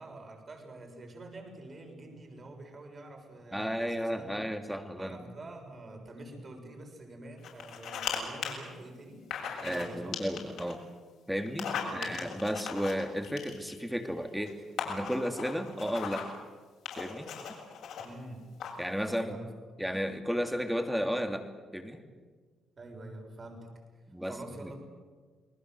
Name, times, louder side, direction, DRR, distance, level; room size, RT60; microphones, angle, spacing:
voice 1, 0.0-4.5 5.0-10.2 11.8-12.3 18.0-18.5 19.1-19.5 22.8-23.7 24.3-24.8, right 2 dB, 35° right, 3 dB, 6.8 m, -46 dB
voice 2, 3.5-5.3 9.6-10.8 11.3-14.6 14.8-16.3 17.0-17.3 18.8-19.4 19.8-22.0 24.1-24.7, equal, 5° right, 5 dB, 2.9 m, -33 dB
sound 1, 7.4-8.2 8.4-8.5 9.3-9.9 10.1-10.7 11.5-13.8 14.5-14.6 14.8-16.4 16.9-18.0 18.6-18.9, left 7 dB, 75° left, 7.3 m, -37 dB
29.0 x 20.5 x 8.0 m, 1.5 s
cardioid pair, 90°, 0 cm